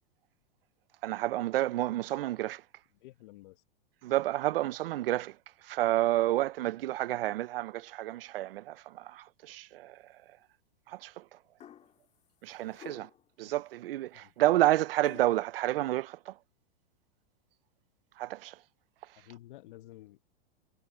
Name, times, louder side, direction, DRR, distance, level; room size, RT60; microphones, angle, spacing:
voice 1, 1.0-2.6 4.0-5.4 5.6-10.0 10.9-11.4 12.4-13.1 13.4-16.4 18.2-18.6, right 15 dB, 75° right, 0.8 m, -30 dB
voice 2, 2.9-3.6 12.5-12.8 14.1-14.3 19.1-20.2, left 16 dB, 60° left, 1.7 m, -52 dB
sound 1, 11.6-12.0 12.7-13.3 15.0-15.4, left 10 dB, 25° left, 2.1 m, -51 dB
supercardioid pair, 140°, 29 cm